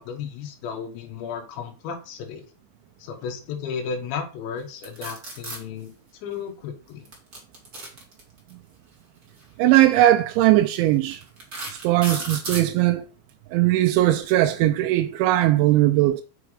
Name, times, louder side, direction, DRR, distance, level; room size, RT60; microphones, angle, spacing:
voice 1, 0.0-2.5 3.0-5.9 6.2-7.1, left 6 dB, 70° left, 3.5 m, -34 dB
sound 1, 4.8-5.6 7.1-8.5 9.6-9.8 10.4-10.5 11.1-12.7, right 2 dB, 35° right, 1.4 m, -34 dB
voice 2, 9.6-11.2 11.8-13.1 13.5-16.2, right 14 dB, 80° right, 2.7 m, -19 dB
6.9 x 6.2 x 4.8 m
omnidirectional pair, 5.8 m